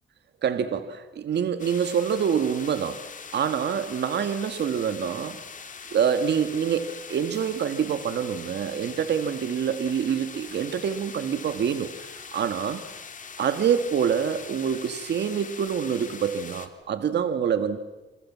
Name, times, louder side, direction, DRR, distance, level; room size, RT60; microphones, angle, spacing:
voice 1, 0.4-3.1 3.3-5.4 5.9-12.8 13.4-17.8, right 7 dB, 60° right, 9 dB, 2.1 m, -26 dB
sound 1, 1.6-16.7, left 5 dB, 40° left, 3.2 m, -42 dB
28.5 x 27.5 x 7.6 m, 1.1 s
cardioid pair, 90°, 20 cm